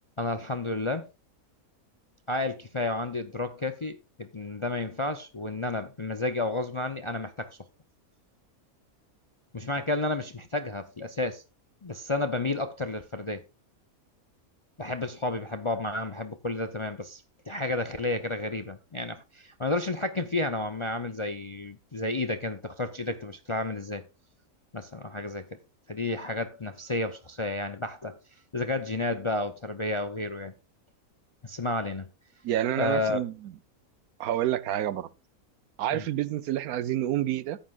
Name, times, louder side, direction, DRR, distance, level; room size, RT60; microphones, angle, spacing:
voice 1, 0.2-1.1 2.3-7.5 9.5-11.4 11.8-13.4 14.8-24.1 24.7-25.5 25.9-28.2 28.5-30.5 31.4-32.1 32.8-33.2 35.9-36.0, left 2 dB, 35° left, 0.5 m, -31 dB
voice 2, 32.4-33.5 34.2-35.1 35.8-37.6, right 12 dB, 85° right, 1.2 m, -28 dB
14.0 x 9.8 x 2.4 m
omnidirectional pair, 1.5 m